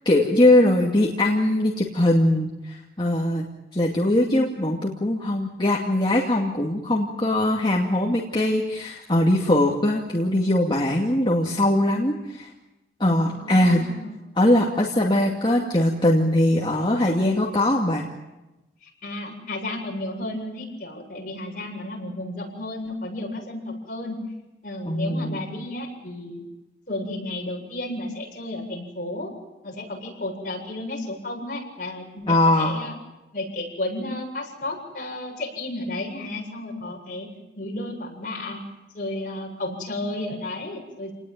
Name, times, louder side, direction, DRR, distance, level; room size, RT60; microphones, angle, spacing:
voice 1, 0.1-3.4 3.7-12.5 13.0-13.9 14.4-18.1 24.9-25.4 32.3-32.8, left 1 dB, 25° left, -2 dB, 2.4 m, -21 dB
voice 2, 4.1-4.7 13.3-14.2 18.8-24.2 24.6-26.4 26.9-29.3 29.6-33.0 33.3-37.3 37.5-38.6 38.9-41.1, left 1 dB, 50° left, -1 dB, 7.9 m, -33 dB
29.0 x 19.5 x 9.3 m, 1.0 s
head